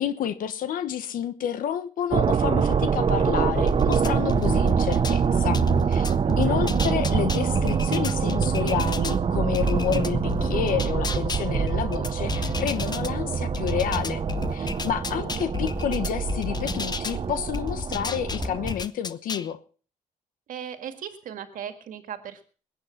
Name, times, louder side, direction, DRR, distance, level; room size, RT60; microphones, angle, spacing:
voice 1, 0.0-5.6 5.9-6.0 6.4-14.2 14.5-19.6, left 9 dB, 80° left, 1.2 m, -29 dB
sound 1, 2.1-18.7, right 6 dB, 40° right, 0.8 m, -25 dB
sound 2, 3.5-5.2 5.5-9.2 9.5-13.1 13.5-17.2 17.5-19.5, left 6 dB, 30° left, 0.9 m, -33 dB
voice 2, 6.2-6.7 15.1-15.2 20.5-22.4, right 8 dB, 75° right, 2.0 m, -38 dB
21.0 x 8.8 x 5.9 m
cardioid pair, 105°, 14 cm